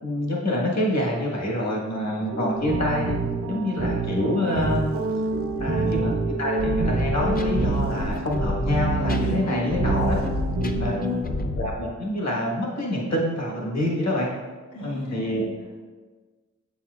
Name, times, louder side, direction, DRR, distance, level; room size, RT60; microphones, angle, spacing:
voice 1, 0.0-3.2 3.5-4.9 5.6-6.1 6.4-10.2 10.8-11.2 11.6-14.3 14.8-15.4, left 1 dB, 60° left, -2 dB, 1.4 m, -26 dB
sound 1, 2.3-11.2, right 2 dB, 80° right, 0.9 m, -27 dB
sound 2, 2.5-3.3 4.2-6.1 7.7-8.3 8.8-9.5 9.9-10.6, right 5 dB, 50° right, 0.5 m, -41 dB
voice 2, 5.5-5.9 9.1-9.4 10.6-11.3 14.7-15.8, left 2 dB, 90° left, -4 dB, 1.3 m, -35 dB
sound 3, 6.6-11.7, left 2 dB, 30° left, 0.6 m, -29 dB
7.5 x 7.1 x 2.4 m, 1.4 s
wide cardioid pair, 60°, 31 cm